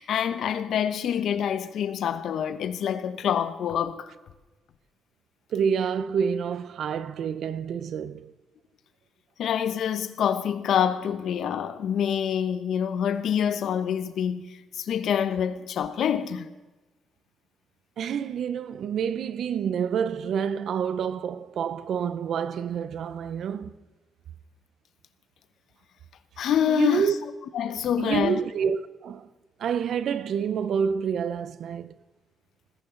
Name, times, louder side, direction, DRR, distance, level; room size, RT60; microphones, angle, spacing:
voice 1, 0.0-4.1 9.4-16.5 26.4-27.0 27.5-28.4, left 8 dB, 75° left, 1.1 m, -26 dB
voice 2, 5.5-8.3 18.0-23.7 26.7-27.1 28.0-29.3 29.6-31.9, right 7 dB, 70° right, 0.8 m, -28 dB
19.5 x 16.0 x 4.0 m
cardioid pair, 105°, 0 cm